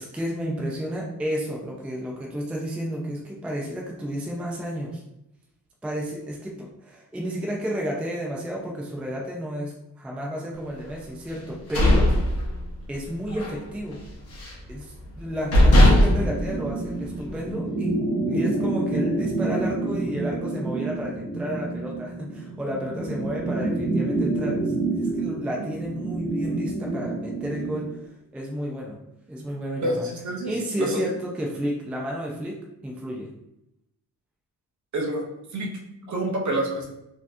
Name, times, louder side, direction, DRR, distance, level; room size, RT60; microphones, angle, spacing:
voice 1, 0.0-5.0 5.8-12.1 12.9-14.0 14.7-17.9 18.3-28.0 28.3-29.0 29.3-30.1 30.4-32.6 32.8-33.3, equal, 5° right, -2 dB, 0.3 m, -31 dB
sound 1, 11.4-13.0 13.3-13.6 13.9-14.7 15.1-15.2 15.5-17.3, left 1 dB, 40° left, 1.0 m, -18 dB
sound 2, 15.4-27.9, right 2 dB, 80° right, 1.1 m, -28 dB
voice 2, 29.8-31.1 34.9-35.2 35.5-35.7 36.1-36.9, right 1 dB, 50° right, 0 dB, 0.7 m, -28 dB
4.1 x 2.8 x 2.5 m, 0.86 s
wide cardioid pair, 170°, 38 cm